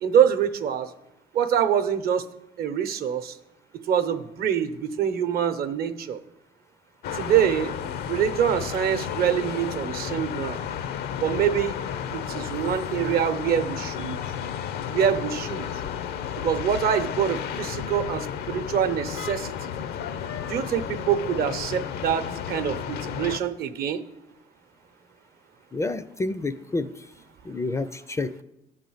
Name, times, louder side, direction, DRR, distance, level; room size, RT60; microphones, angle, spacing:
voice 1, 0.0-0.9 1.3-2.3 2.6-3.4 3.9-6.2 7.1-7.7 8.1-10.6 11.2-11.7 12.1-14.2 14.9-15.7 16.4-19.7 20.5-24.0, right 8 dB, 65° right, 9 dB, 0.8 m, -25 dB
sound 1, 7.0-23.4, left 8 dB, 70° left, 0.6 m, -32 dB
voice 2, 25.7-27.0 27.4-28.3, left 3 dB, 15° left, 12 dB, 0.4 m, -29 dB
11.5 x 4.0 x 7.8 m, 0.88 s
cardioid pair, 110°, 17 cm